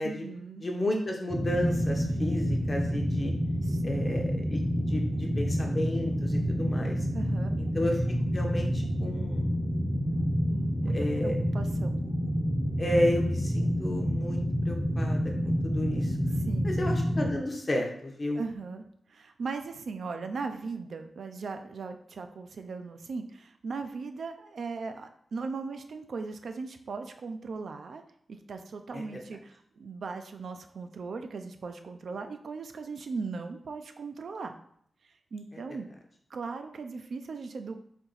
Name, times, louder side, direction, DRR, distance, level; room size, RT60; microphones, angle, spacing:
voice 1, 0.0-0.7 3.6-4.1 7.1-7.6 10.5-11.0 11.2-12.0 16.4-16.7 18.4-18.8 19.1-28.0 28.3-34.6 35.0-35.9 36.3-37.8, right 4 dB, 60° right, 6 dB, 0.4 m, -38 dB
voice 2, 0.6-3.3 3.8-7.0 7.6-8.0 8.3-9.6 10.8-11.4 12.8-16.1 16.6-18.4 28.9-29.0 35.5-35.6, left 1 dB, 30° left, 2 dB, 0.7 m, -32 dB
sound 1, 1.3-17.3, equal, 15° right, 0.6 m, -28 dB
4.3 x 2.9 x 3.9 m, 0.66 s
wide cardioid pair, 160°, 0 cm